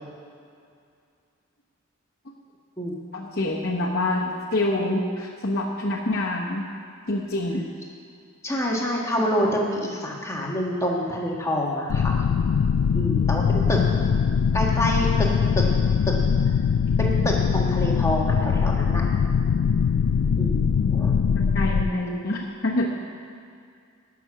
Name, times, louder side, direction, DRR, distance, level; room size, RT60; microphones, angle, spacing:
voice 1, 3.1-6.7 7.1-7.7 14.7-14.8 21.4-22.9, left 1 dB, 50° left, -6 dB, 1.1 m, -26 dB
voice 2, 8.4-12.2 12.9-13.8 14.5-15.3 15.5-15.6 17.0-19.0 20.4-21.2 22.1-22.2, equal, 15° left, -2 dB, 1.5 m, -27 dB
sound 1, 11.9-21.9, left 6 dB, 85° left, 0.3 m, -22 dB
18.0 x 6.2 x 6.2 m, 2.3 s
head